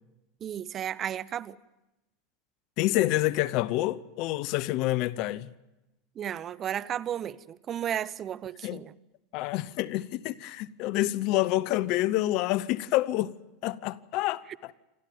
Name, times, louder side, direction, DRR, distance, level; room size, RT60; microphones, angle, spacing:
voice 1, 0.4-1.6 6.2-8.9, right 10 dB, 35° right, 0.7 m, -33 dB
voice 2, 2.8-5.5 8.6-8.8 9.3-13.3 13.6-14.7, left 16 dB, 55° left, 0.8 m, -28 dB
28.0 x 13.5 x 9.3 m
hypercardioid pair, 105°, 0 cm